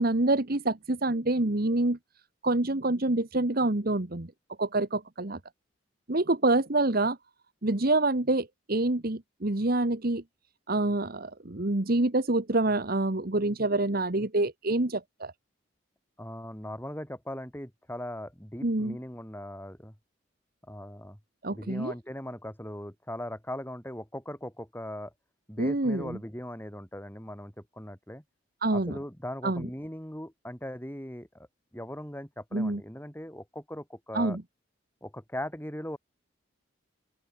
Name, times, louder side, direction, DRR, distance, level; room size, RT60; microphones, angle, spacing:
voice 1, 0.0-2.0 2.4-4.3 4.6-5.4 6.1-7.2 7.6-10.2 10.7-15.3 18.6-19.0 21.4-21.9 25.6-26.2 28.6-29.0 29.4-29.7 32.5-32.8 34.1-34.4, right 2 dB, 50° right, 1.4 m, -26 dB
voice 2, 16.2-19.9 20.7-21.2 21.5-25.1 25.5-28.2 28.7-31.5 31.7-34.4 35.0-36.0, left 1 dB, 10° left, 6.6 m, -39 dB
open air
head